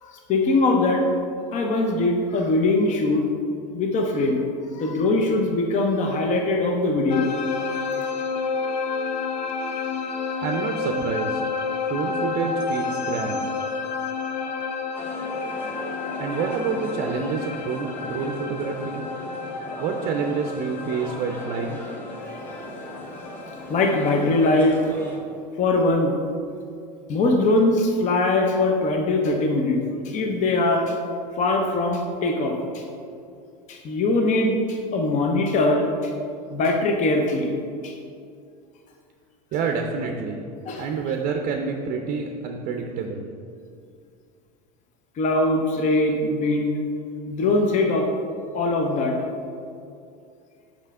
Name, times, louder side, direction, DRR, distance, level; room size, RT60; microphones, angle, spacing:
voice 1, 0.0-1.0 1.5-3.2 3.7-4.5 4.7-7.3 7.6-8.1 23.7-24.8 25.6-26.1 27.1-29.8 30.0-31.0 31.4-32.9 33.7-36.1 36.5-37.5 37.8-38.0 40.7-40.8 45.2-46.8 47.3-48.1 48.5-49.2, left 2 dB, 35° left, 2 dB, 0.7 m, -22 dB
sound 1, 7.1-24.5, left 4 dB, 85° left, 0.5 m, -30 dB
voice 2, 10.4-11.4 11.9-13.5 16.2-19.1 19.8-21.8 39.5-40.4 40.8-43.3, right 5 dB, 45° right, 3 dB, 0.5 m, -28 dB
sound 2, 14.9-25.2, equal, 10° left, 1.5 m, -38 dB
5.5 x 5.0 x 3.6 m, 2.4 s
hypercardioid pair, 95°, 21 cm